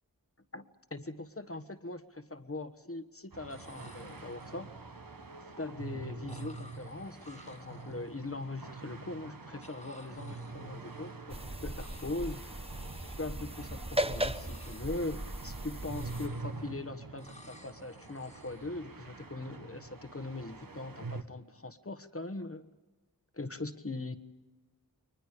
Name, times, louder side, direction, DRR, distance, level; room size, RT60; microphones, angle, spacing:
voice 1, 0.5-4.7 5.6-12.7 13.0-22.7 23.3-24.2, left 2 dB, 35° left, 10 dB, 1.4 m, -41 dB
sound 1, 1.2-1.3 1.6-2.2 3.2-3.3 3.5-4.7 6.3-8.5 9.6-11.3 11.6-12.3 12.6-13.4 13.9-15.5 15.8-16.8 17.2-18.7, left 1 dB, 15° left, 1.9 m, -57 dB
sound 2, 3.3-21.2, right 3 dB, 60° right, 1.4 m, -46 dB
sound 3, 11.3-16.3, equal, 15° right, 0.9 m, -37 dB
30.0 x 23.0 x 5.2 m, 1.2 s
wide cardioid pair, 50°, 38 cm